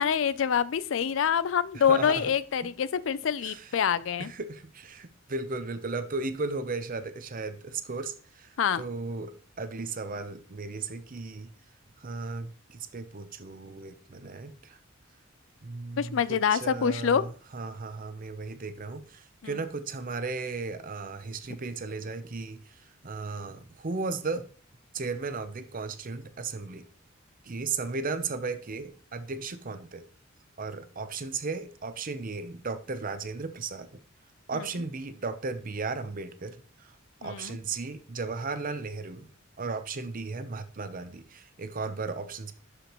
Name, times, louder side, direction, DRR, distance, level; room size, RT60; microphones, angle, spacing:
voice 1, 0.0-4.3 8.6-8.8 16.0-17.2 37.2-37.6, left 7 dB, 70° left, 0.4 m, -26 dB
voice 2, 1.7-2.3 3.4-3.8 4.2-11.5 12.0-14.8 15.6-24.5 24.9-26.9 27.4-30.1 30.6-34.0 34.5-37.0 37.2-39.3 39.6-42.5, right 4 dB, 45° right, 0.7 m, -35 dB
11.5 x 5.1 x 3.0 m
head